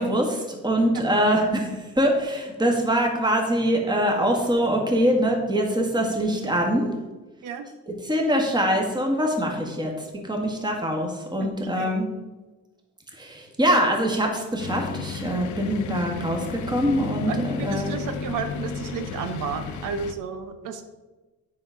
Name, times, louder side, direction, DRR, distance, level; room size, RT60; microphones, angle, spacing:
voice 1, 0.0-6.9 7.9-9.9 10.2-12.1 13.2-17.9, equal, 15° right, 1 dB, 1.7 m, -23 dB
voice 2, 11.4-12.1 17.3-20.8, right 6 dB, 85° right, 8 dB, 0.9 m, -32 dB
sound 1, 14.6-20.1, left 6 dB, 75° left, 0.7 m, -33 dB
7.7 x 5.0 x 5.7 m, 1.2 s
cardioid pair, 90°, 30 cm